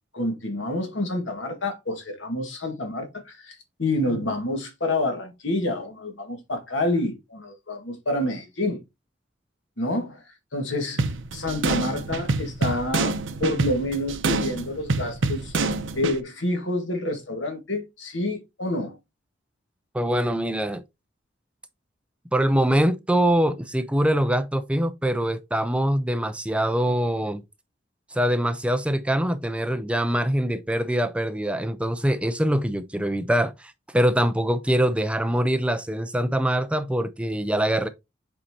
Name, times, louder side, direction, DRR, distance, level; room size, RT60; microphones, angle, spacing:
voice 1, 0.1-8.8 9.8-10.2 10.5-11.1 11.3-15.5 15.9-19.0, left 1 dB, 70° left, 1.8 m, -28 dB
sound 1, 11.0-16.2, right 3 dB, 75° right, 0.7 m, -26 dB
voice 2, 19.9-20.8 22.3-27.4 28.1-37.9, right 1 dB, 5° right, 0.4 m, -23 dB
7.8 x 4.4 x 2.9 m
head